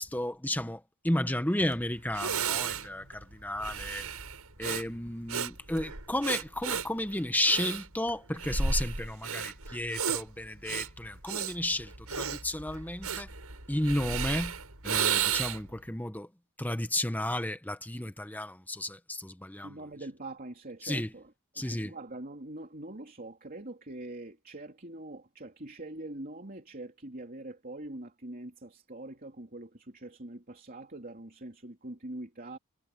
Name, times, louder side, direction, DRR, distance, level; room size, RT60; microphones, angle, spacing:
voice 1, 0.0-4.1 4.6-13.3 13.7-14.6 14.8-16.3 16.6-19.8 20.8-21.1 21.6-21.9, left 1 dB, 10° left, 1.2 m, -33 dB
Breathing, 1.7-1.8 2.1-15.8, right 6 dB, 85° right, 6.9 m, -33 dB
voice 2, 19.6-32.6, right 2 dB, 40° right, 3.3 m, -43 dB
head